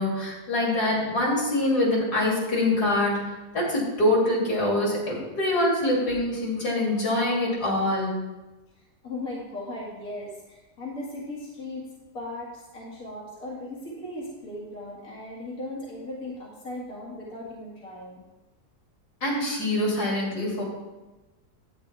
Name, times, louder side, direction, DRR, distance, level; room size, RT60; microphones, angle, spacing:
voice 1, 0.0-3.2 3.5-8.1 19.2-20.6, left 1 dB, 90° left, -3 dB, 3.4 m, -24 dB
voice 2, 9.0-11.8 12.1-18.2, left 1 dB, 60° left, -6 dB, 2.6 m, -37 dB
11.5 x 8.2 x 3.4 m, 1.1 s
omnidirectional pair, 1.7 m